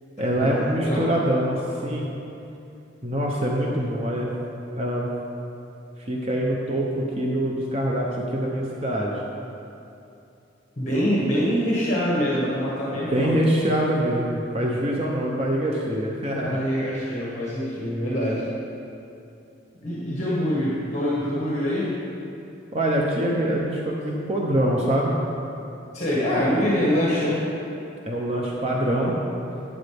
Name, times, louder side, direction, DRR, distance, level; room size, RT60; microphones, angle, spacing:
voice 1, 0.2-2.0 3.0-4.3 4.7-5.1 6.0-9.2 13.1-16.6 22.7-25.1 26.1-26.7 28.1-29.2, right 1 dB, 35° right, -2 dB, 0.8 m, -24 dB
voice 2, 10.8-13.4 16.4-18.4 19.8-22.0 25.9-27.4, equal, 35° left, -7 dB, 1.7 m, -24 dB
12.0 x 8.7 x 3.5 m, 2.8 s
head